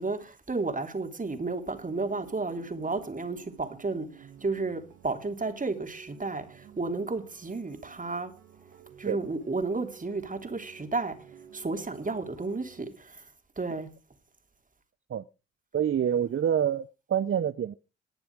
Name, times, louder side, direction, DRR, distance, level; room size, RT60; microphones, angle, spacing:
voice 1, 0.0-8.3 9.0-11.1 11.5-13.3 13.6-13.9, right 3 dB, 25° right, 3.2 m, -32 dB
sound 1, 1.7-12.8, right 8 dB, 80° right, 2.5 m, -52 dB
voice 2, 15.7-17.8, right 9 dB, 45° right, 0.8 m, -27 dB
20.0 x 6.9 x 4.8 m
supercardioid pair, 55°, 29 cm